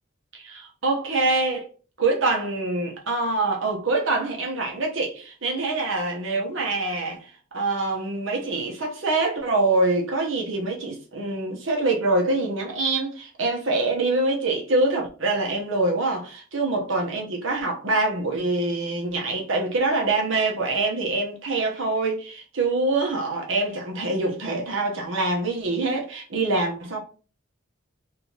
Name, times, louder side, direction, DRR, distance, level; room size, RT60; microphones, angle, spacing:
voice 1, 0.3-1.7 2.0-27.0, right 2 dB, 75° right, 0.9 m, -25 dB
3.4 x 2.8 x 2.8 m
head